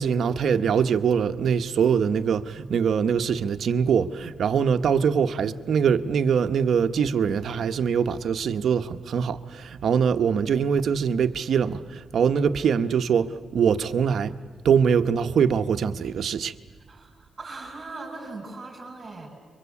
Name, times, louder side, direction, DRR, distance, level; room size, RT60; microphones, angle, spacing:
voice 1, 0.0-14.3 14.6-16.5, right 7 dB, 65° right, 1.1 m, -23 dB
voice 2, 16.9-19.3, right 3 dB, 30° right, 6.9 m, -39 dB
29.5 x 24.0 x 8.4 m
cardioid pair, 120°, 0 cm